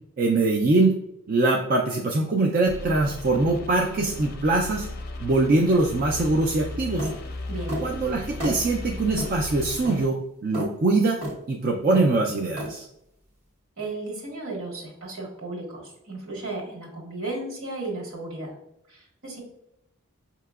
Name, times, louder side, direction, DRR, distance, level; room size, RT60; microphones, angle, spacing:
voice 1, 0.2-0.9 1.3-4.9 5.2-7.1 7.8-10.2 10.4-11.2 11.5-12.9, right 2 dB, 40° right, 0 dB, 0.4 m, -22 dB
sound 1, 2.7-10.1, left 2 dB, 45° left, 0.5 m, -36 dB
sound 2, 7.0-7.2 7.7-7.9 8.4-8.6 9.2-9.3 9.9-10.0 10.5-10.7 11.2-11.4 11.9-12.1 12.6-12.7, equal, 85° right, 1.4 m, -30 dB
voice 2, 13.8-18.5 18.9-19.4, right 2 dB, 70° right, -2 dB, 1.5 m, -34 dB
5.6 x 2.9 x 2.3 m, 0.79 s
head